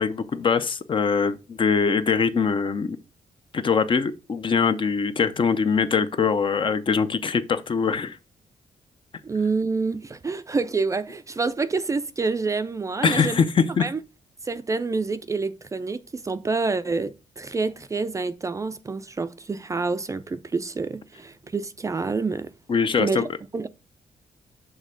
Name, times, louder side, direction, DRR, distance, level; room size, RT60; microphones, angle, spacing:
voice 1, 0.0-3.0 3.5-8.2 13.0-13.9 22.7-23.3, left 5 dB, 40° left, 0.6 m, -22 dB
voice 2, 9.2-13.4 13.8-14.0 14.4-22.5 23.0-23.2 23.5-23.7, right 4 dB, 25° right, 0.4 m, -27 dB
6.3 x 3.3 x 5.0 m
cardioid pair, 125°, 13 cm